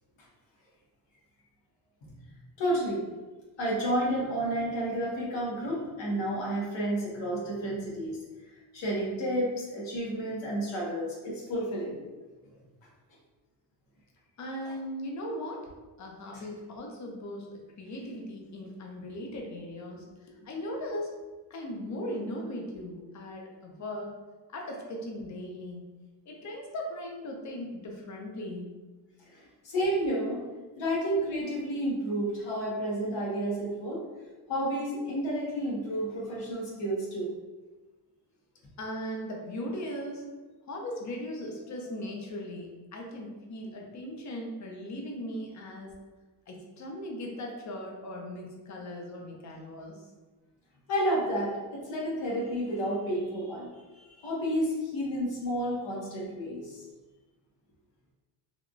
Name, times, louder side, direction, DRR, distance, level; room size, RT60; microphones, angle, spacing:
voice 1, 2.6-3.0 3.6-8.2 8.7-12.0 16.3-16.4 29.3-30.4 30.8-34.0 34.5-37.3 50.9-56.8, right 1 dB, 80° left, -5 dB, 1.3 m, -31 dB
voice 2, 14.4-15.7 16.0-21.1 21.5-24.1 24.5-25.9 26.3-28.7 36.1-36.2 38.8-40.2 40.7-45.9 46.5-50.0, left 1 dB, 40° left, 0 dB, 0.7 m, -38 dB
3.4 x 2.3 x 2.5 m, 1.2 s
cardioid pair, 95°, 44 cm